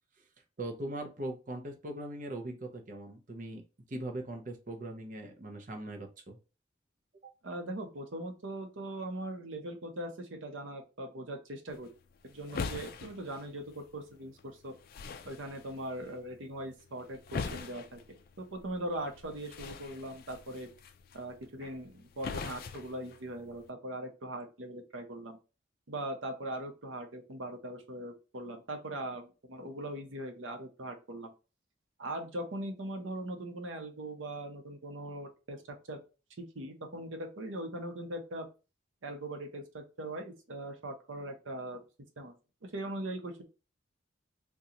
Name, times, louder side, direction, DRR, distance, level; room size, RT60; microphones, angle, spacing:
voice 1, 0.6-3.6 3.9-6.4 7.2-7.3, right 1 dB, 40° right, 3 dB, 0.6 m, -40 dB
voice 2, 7.4-11.9 12.2-14.7 15.2-18.0 18.4-20.7 21.1-25.4 25.9-31.3 32.0-36.0 36.4-38.5 39.0-41.8 42.2-42.3 42.7-43.4, right 1 dB, 80° right, 4 dB, 0.8 m, -40 dB
sound 1, 11.7-23.7, left 5 dB, 50° left, 0.3 m, -44 dB
3.8 x 2.2 x 2.8 m, 0.31 s
head